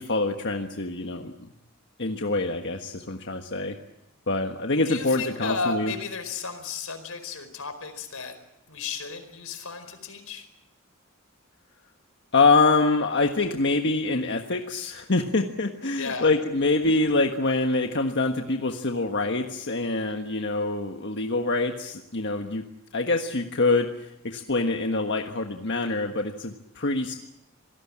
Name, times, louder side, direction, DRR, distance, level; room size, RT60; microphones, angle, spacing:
voice 1, 0.0-1.5 2.0-3.8 4.3-5.9 12.3-22.6 22.9-27.1, left 3 dB, 55° left, 4 dB, 1.5 m, -25 dB
voice 2, 4.7-8.4 8.7-10.5 16.0-16.3, left 4 dB, 80° left, 9 dB, 4.7 m, -33 dB
27.0 x 18.5 x 8.7 m, 0.87 s
head